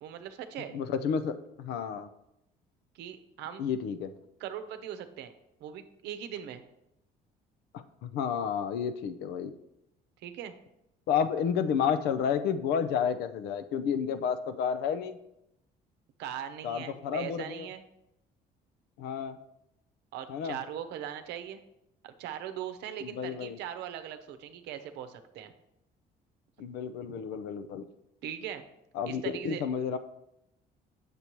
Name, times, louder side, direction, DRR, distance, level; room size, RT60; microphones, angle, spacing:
voice 1, 0.0-0.7 2.9-3.6 4.4-5.3 5.6-6.6 10.2-10.5 16.2-17.8 20.1-21.6 22.0-25.5 28.2-28.6 29.1-29.6, right 10 dB, 85° right, 9 dB, 0.8 m, -40 dB
voice 2, 0.7-2.1 3.6-4.1 7.7-9.5 11.1-15.2 16.6-17.7 19.0-19.4 20.3-20.6 23.0-23.6 26.6-27.8 28.9-30.0, left 7 dB, 85° left, 11 dB, 0.6 m, -31 dB
8.2 x 6.8 x 3.0 m, 0.84 s
cardioid pair, 110°, 17 cm